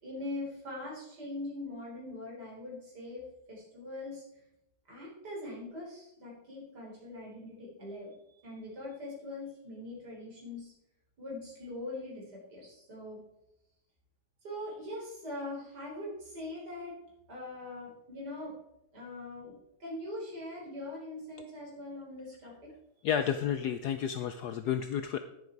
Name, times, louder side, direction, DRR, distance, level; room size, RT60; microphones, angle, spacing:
voice 1, 0.0-4.4 4.9-10.7 11.2-13.2 14.4-16.9 17.3-18.5 18.9-19.5 19.8-22.7, left 1 dB, 45° right, -4 dB, 4.9 m, -42 dB
voice 2, 23.0-25.2, left 8 dB, 90° left, 10 dB, 0.8 m, -31 dB
10.5 x 9.8 x 4.6 m, 0.85 s
omnidirectional pair, 2.4 m